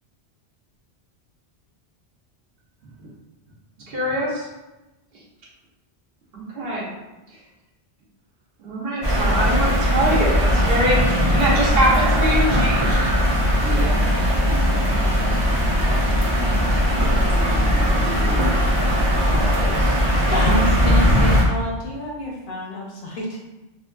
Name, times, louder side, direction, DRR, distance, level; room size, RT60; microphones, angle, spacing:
voice 1, 2.8-3.1 7.3-7.4 13.6-16.5 17.0-18.5 19.2-20.0, right 2 dB, 90° right, -2 dB, 0.9 m, -34 dB
voice 2, 3.9-4.5 6.3-6.9 8.6-11.0 11.3-13.0, right 1 dB, 65° right, -5 dB, 1.0 m, -23 dB
sound 1, 9.0-21.4, equal, 35° right, 0.4 m, -19 dB
voice 3, 20.3-23.4, equal, 60° left, -3 dB, 0.6 m, -27 dB
2.7 x 2.4 x 2.2 m, 1.0 s
omnidirectional pair, 1.1 m